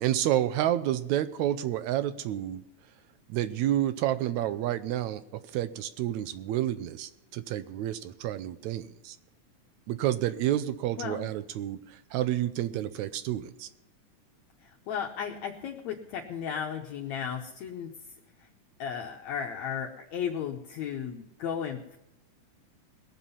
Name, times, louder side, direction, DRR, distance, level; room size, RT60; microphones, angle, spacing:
voice 1, 0.0-2.6 3.3-5.2 5.5-9.2 9.9-13.7, right 12 dB, 80° right, 13 dB, 1.8 m, -29 dB
voice 2, 14.6-17.9 18.8-22.0, left 8 dB, 70° left, 1 dB, 2.0 m, -35 dB
21.0 x 7.5 x 5.5 m, 0.92 s
omnidirectional pair, 3.6 m